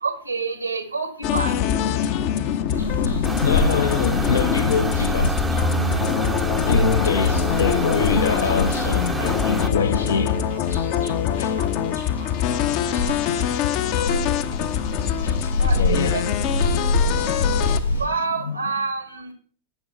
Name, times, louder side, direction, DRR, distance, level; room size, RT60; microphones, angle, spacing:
voice 1, 0.0-1.6 11.6-11.7 12.2-12.3 13.1-13.2 13.7-14.3 14.6-14.7 15.6-15.8 16.1-16.2 18.0-19.3, right 4 dB, 80° right, 1.9 m, -28 dB
sound 1, 1.2-17.8, left 9 dB, 45° left, 0.8 m, -24 dB
sound 2, 2.7-18.0, left 2 dB, 90° left, 5.7 m, -26 dB
sound 3, 3.2-9.7, right 3 dB, 10° right, 0.7 m, -29 dB
voice 2, 3.4-5.4 6.7-10.5 11.4-11.6 15.2-18.1 18.4-18.6, left 5 dB, 70° left, 0.9 m, -26 dB
10.0 x 7.7 x 5.6 m
figure-of-eight pair, 90°, 0 cm